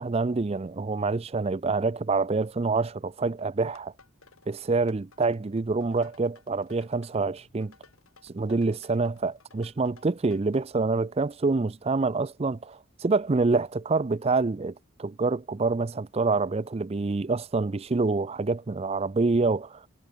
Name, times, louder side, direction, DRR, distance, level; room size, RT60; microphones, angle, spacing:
voice 1, 0.0-3.9 4.5-7.7 8.2-19.8, right 3 dB, 30° right, 0.4 m, -26 dB
sound 1, 3.7-10.6, left 3 dB, 80° left, 5.6 m, -57 dB
head